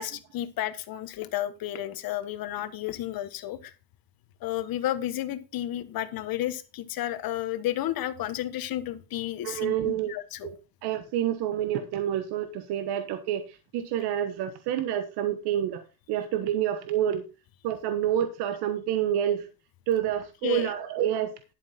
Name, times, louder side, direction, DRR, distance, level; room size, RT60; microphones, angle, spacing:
voice 1, 0.0-3.7 4.4-10.5 20.4-20.7, left 13 dB, 65° left, 12 dB, 1.4 m, -32 dB
voice 2, 9.4-10.1 10.4-10.6 10.8-17.2 17.6-19.5 19.9-21.3, right 10 dB, 85° right, 9 dB, 1.3 m, -28 dB
11.5 x 7.4 x 4.3 m, 0.31 s
cardioid pair, 115°, 38 cm